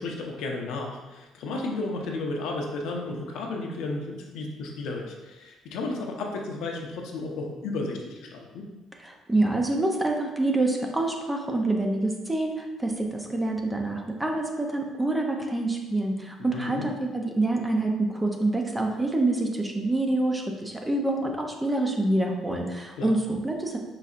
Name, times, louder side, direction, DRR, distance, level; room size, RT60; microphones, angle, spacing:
voice 1, 0.0-8.7 16.5-16.9 23.0-23.1, left 2 dB, 80° left, 1 dB, 0.7 m, -33 dB
voice 2, 9.0-23.8, right 2 dB, 10° right, 2 dB, 0.5 m, -26 dB
5.3 x 4.0 x 2.4 m, 1.2 s
cardioid pair, 160°, 0 cm